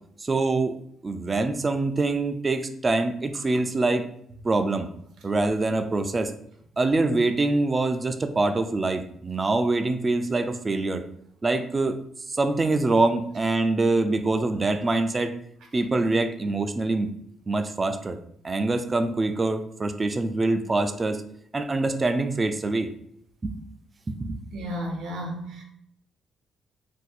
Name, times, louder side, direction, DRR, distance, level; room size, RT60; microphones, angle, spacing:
voice 1, 0.2-0.7 1.0-4.0 4.4-4.9 5.2-6.3 6.8-11.0 11.4-11.9 12.3-15.3 15.7-17.1 17.5-18.2 18.4-21.2 21.5-22.9 23.4-23.5 24.1-24.4, right 2 dB, 25° right, 7 dB, 0.3 m, -24 dB
voice 2, 24.5-25.6, equal, 75° right, 1 dB, 0.8 m, -33 dB
2.6 x 2.2 x 4.0 m, 0.69 s
cardioid pair, 90°, 0 cm